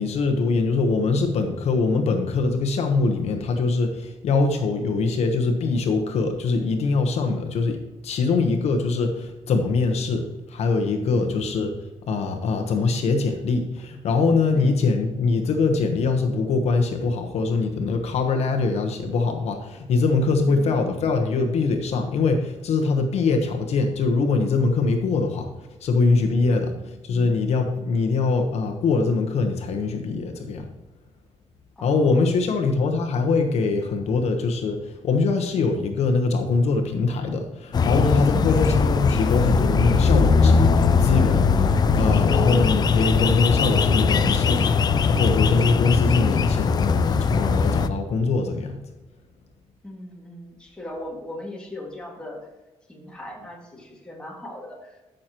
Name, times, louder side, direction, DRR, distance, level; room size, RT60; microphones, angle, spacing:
voice 1, 0.0-11.8 12.1-25.5 25.8-30.7 31.8-48.8, left 4 dB, 65° left, 4 dB, 1.1 m, -23 dB
voice 2, 11.1-11.4 14.6-14.9 20.4-20.8 26.5-26.9 31.8-32.2 32.5-32.6 49.8-52.5 52.9-55.0, left 1 dB, 10° left, -2 dB, 2.1 m, -39 dB
sound 1, 37.7-47.9, left 5 dB, 35° left, 0.5 m, -20 dB
13.5 x 6.5 x 3.0 m, 1.1 s
cardioid pair, 145°, 12 cm